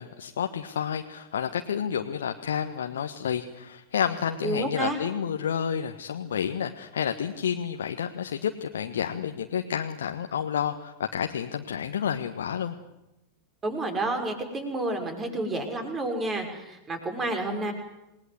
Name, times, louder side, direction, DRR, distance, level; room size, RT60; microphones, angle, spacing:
voice 1, 0.0-12.7, left 8 dB, 65° left, 5 dB, 1.4 m, -30 dB
voice 2, 4.4-5.0 13.6-17.7, right 2 dB, 20° right, 5 dB, 5.8 m, -30 dB
28.0 x 20.0 x 8.0 m, 0.94 s
figure-of-eight pair, 90°, 0 cm